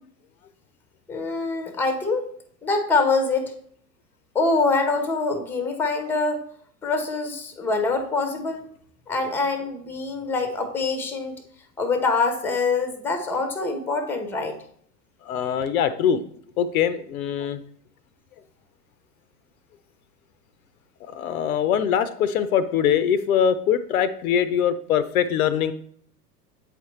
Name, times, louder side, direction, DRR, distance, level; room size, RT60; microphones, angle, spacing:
voice 1, 1.1-2.3 2.6-3.5 4.3-6.4 6.8-8.7 9.1-11.4 11.8-14.6, left 3 dB, 5° left, 7 dB, 0.6 m, -24 dB
voice 2, 15.3-16.2 16.6-17.6 21.0-25.7, left 8 dB, 60° left, 13 dB, 0.6 m, -22 dB
7.8 x 5.0 x 3.1 m, 0.64 s
figure-of-eight pair, 85°, 49 cm